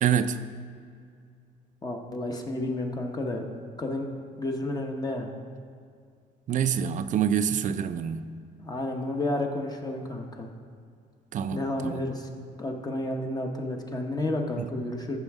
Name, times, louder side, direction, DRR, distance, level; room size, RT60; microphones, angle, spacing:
voice 1, 0.0-0.4 6.5-8.2 11.3-12.0 14.6-14.7, right 8 dB, 50° right, 12 dB, 0.5 m, -26 dB
voice 2, 1.8-3.5 3.8-4.1 4.4-5.3 8.6-10.5 11.5-12.3 12.6-15.2, left 1 dB, 25° left, 2 dB, 1.0 m, -31 dB
15.0 x 6.4 x 3.5 m, 2.3 s
cardioid pair, 110°, 17 cm